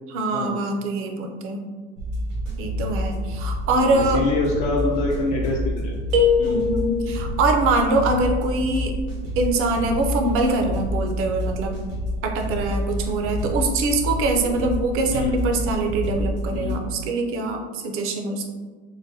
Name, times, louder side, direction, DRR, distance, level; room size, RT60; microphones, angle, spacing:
voice 1, 0.1-1.6 2.6-4.2 6.4-8.9 9.4-11.7 12.2-18.5, right 2 dB, 40° right, 3 dB, 0.5 m, -23 dB
sound 1, 2.0-16.8, equal, 85° right, 1.1 m, -28 dB
voice 2, 3.7-5.9 6.4-6.6 15.1-15.5 16.5-16.8, left 3 dB, 70° left, -3 dB, 0.6 m, -25 dB
sound 2, 6.1-7.3, left 4 dB, 65° right, 0.9 m, -21 dB
3.9 x 2.1 x 2.6 m, 1.4 s
supercardioid pair, 120°, 36 cm